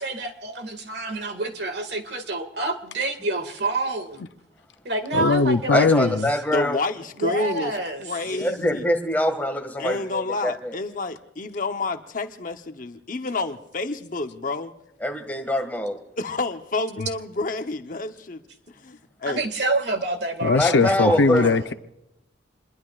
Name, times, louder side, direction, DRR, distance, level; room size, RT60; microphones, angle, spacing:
voice 1, 0.0-4.3 4.9-6.2 7.2-8.0 19.3-21.6, right 2 dB, 60° right, 2.0 m, -28 dB
voice 2, 5.1-6.3 8.6-8.7 20.4-21.7, left 4 dB, 70° left, 0.6 m, -20 dB
voice 3, 5.7-6.8 8.3-10.8 15.0-16.0 20.5-21.4, left 1 dB, 10° left, 1.9 m, -24 dB
voice 4, 6.5-8.9 9.8-14.7 16.2-19.5, left 3 dB, 45° left, 0.9 m, -29 dB
27.0 x 21.5 x 2.4 m
head